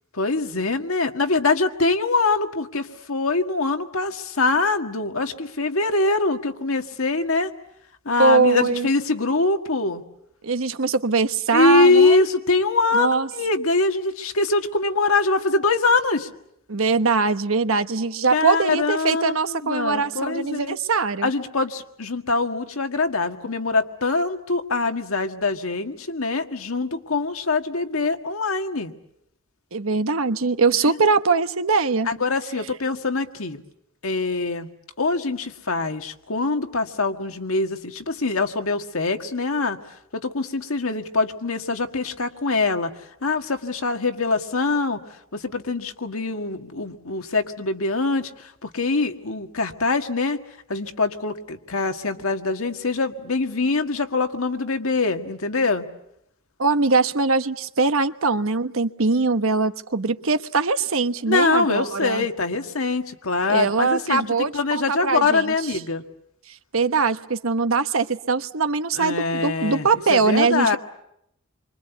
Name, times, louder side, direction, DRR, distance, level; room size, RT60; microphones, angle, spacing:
voice 1, 0.1-7.5 8.1-10.0 11.5-16.3 18.3-20.8 21.2-28.9 30.9-31.0 32.1-33.6 34.0-34.7 35.0-39.8 40.1-42.9 43.2-45.0 45.3-50.4 50.7-55.9 61.3-66.0 69.0-70.8, left 3 dB, 80° left, 6 dB, 1.8 m, -23 dB
voice 2, 8.2-8.9 10.4-12.3 12.9-13.3 16.7-21.3 29.7-32.1 56.6-62.3 63.5-65.5 66.5-70.8, right 4 dB, 75° right, 10 dB, 1.1 m, -22 dB
28.0 x 24.5 x 8.2 m, 0.78 s
head